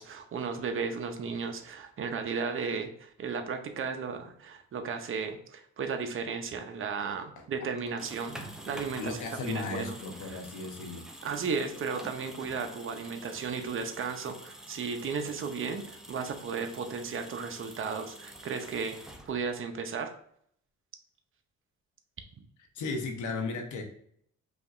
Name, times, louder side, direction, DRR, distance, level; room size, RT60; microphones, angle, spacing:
voice 1, 0.0-10.0 10.3-10.4 11.2-19.0 19.3-20.1, right 5 dB, 45° right, 6 dB, 0.7 m, -35 dB
sound 1, 7.8-19.7, right 1 dB, ahead, 0.6 m, -47 dB
voice 2, 9.0-11.0 22.7-23.8, left 3 dB, 80° left, 3 dB, 1.0 m, -35 dB
5.0 x 2.9 x 2.5 m, 0.66 s
cardioid pair, 90°, 30 cm